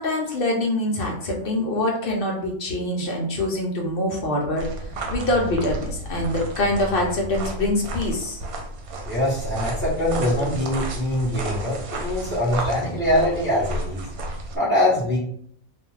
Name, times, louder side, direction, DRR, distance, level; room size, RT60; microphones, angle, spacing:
voice 1, 0.0-4.7 5.1-8.4, left 1 dB, 65° left, 0 dB, 0.5 m, -24 dB
sound 1, 4.6-14.6, right 1 dB, 85° right, 1.1 m, -32 dB
voice 2, 9.1-14.0 14.5-15.2, left 1 dB, 10° right, -7 dB, 0.6 m, -23 dB
2.4 x 2.3 x 3.1 m, 0.65 s
omnidirectional pair, 1.5 m